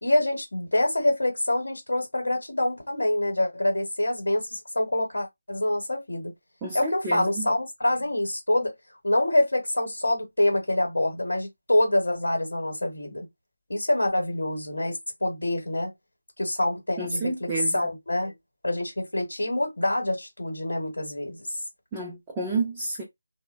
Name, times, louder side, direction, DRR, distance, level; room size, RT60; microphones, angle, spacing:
voice 1, 0.0-6.3 6.7-8.7 9.0-13.3 13.7-15.9 16.4-17.5 17.7-18.3 18.6-21.5, left 1 dB, 60° left, 0.9 m, -26 dB
voice 2, 6.6-7.5 17.0-17.9 21.9-23.0, right 3 dB, 10° right, 0.5 m, -30 dB
3.0 x 2.1 x 2.3 m
figure-of-eight pair, 160°, 0 cm